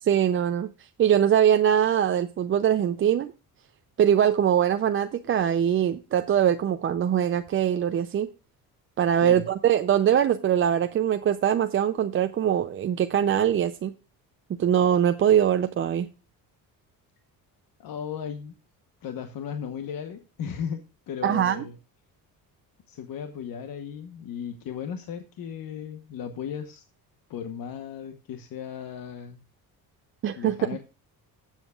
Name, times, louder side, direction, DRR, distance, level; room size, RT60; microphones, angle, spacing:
voice 1, 0.0-0.7 1.0-3.3 4.0-8.3 9.0-13.9 14.6-16.1 21.2-21.6 30.2-30.5, right 9 dB, 35° right, 9 dB, 0.4 m, -22 dB
voice 2, 17.8-18.5 19.0-21.8 22.9-26.8 27.3-29.4 30.4-30.8, left 7 dB, 65° left, 7 dB, 1.0 m, -36 dB
19.0 x 7.3 x 2.3 m, 0.31 s
cardioid pair, 115°, 37 cm